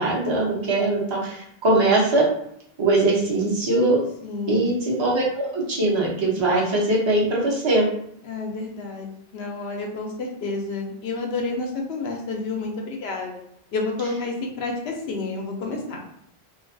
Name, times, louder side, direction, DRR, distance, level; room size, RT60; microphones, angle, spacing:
voice 1, 0.0-2.3 2.8-4.0 4.5-7.9, right 2 dB, 30° right, -4 dB, 0.6 m, -21 dB
voice 2, 4.2-4.7 8.2-13.4 13.7-16.1, left 3 dB, 85° left, 1 dB, 0.8 m, -30 dB
2.4 x 2.2 x 2.5 m, 0.71 s
omnidirectional pair, 1.0 m